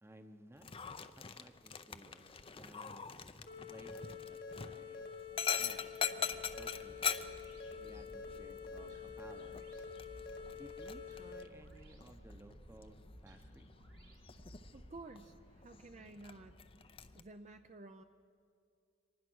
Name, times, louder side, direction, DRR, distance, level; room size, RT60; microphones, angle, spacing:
voice 1, 0.0-0.7 1.2-3.1 3.7-5.1 5.6-7.2 7.8-9.6 10.5-13.7, right 1 dB, 15° right, 8 dB, 1.0 m, -58 dB
Dog, 0.6-17.2, left 7 dB, 30° left, 0.6 m, -44 dB
sound 1, 3.5-11.4, left 5 dB, 55° left, 1.6 m, -47 dB
sound 2, 6.3-15.0, equal, 75° right, 4.5 m, -58 dB
voice 2, 14.7-16.5 17.1-18.0, right 2 dB, 35° right, 6 dB, 0.6 m, -52 dB
24.5 x 20.0 x 6.3 m, 2.4 s
head